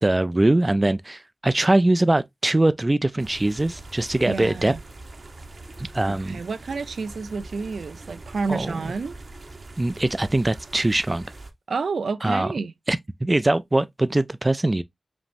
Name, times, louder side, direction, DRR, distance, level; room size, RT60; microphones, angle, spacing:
voice 1, 0.0-4.7 5.8-6.4 8.5-8.8 9.8-11.3 12.2-12.5 12.9-14.8, right 2 dB, 20° right, 0.3 m, -22 dB
sound 1, 3.2-11.5, right 2 dB, 50° right, 0.8 m, -42 dB
voice 2, 4.2-4.8 6.1-9.2 11.7-12.7, right 4 dB, 90° right, 0.5 m, -29 dB
5.2 x 3.0 x 2.5 m
wide cardioid pair, 100°, 0 cm